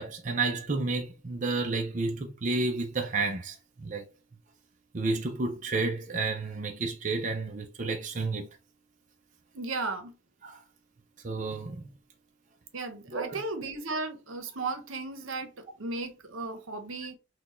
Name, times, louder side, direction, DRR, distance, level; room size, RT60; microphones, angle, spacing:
voice 1, 0.0-4.1 4.9-8.5 10.4-10.6 11.2-11.9 13.1-13.4, right 3 dB, 35° right, 0.5 m, -31 dB
voice 2, 9.5-10.1 12.7-17.2, right 3 dB, 75° right, 0.9 m, -35 dB
6.0 x 2.3 x 3.0 m
head